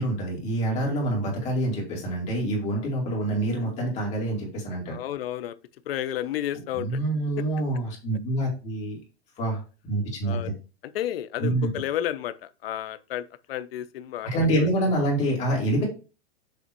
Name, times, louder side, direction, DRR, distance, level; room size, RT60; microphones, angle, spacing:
voice 1, 0.0-5.0 6.7-9.0 9.4-10.5 11.4-11.7 14.2-15.8, right 1 dB, 20° left, 2.6 m, -26 dB
voice 2, 4.9-5.6 5.9-7.0 7.4-7.5 10.2-10.5 10.9-14.7, left 12 dB, 65° left, 0.8 m, -32 dB
7.0 x 3.5 x 4.5 m
supercardioid pair, 160°, 32 cm